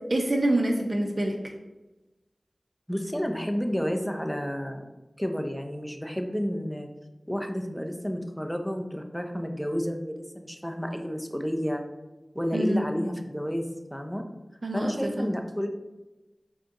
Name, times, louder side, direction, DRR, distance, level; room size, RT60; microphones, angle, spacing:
voice 1, 0.1-1.5 12.5-12.8 14.6-15.3, right 1 dB, 50° right, 2 dB, 0.5 m, -26 dB
voice 2, 2.9-4.8 5.2-6.9 7.3-11.8 12.3-14.2 14.7-15.7, equal, ahead, 4 dB, 0.5 m, -31 dB
4.8 x 2.9 x 3.6 m, 1.1 s
wide cardioid pair, 55°, 0 cm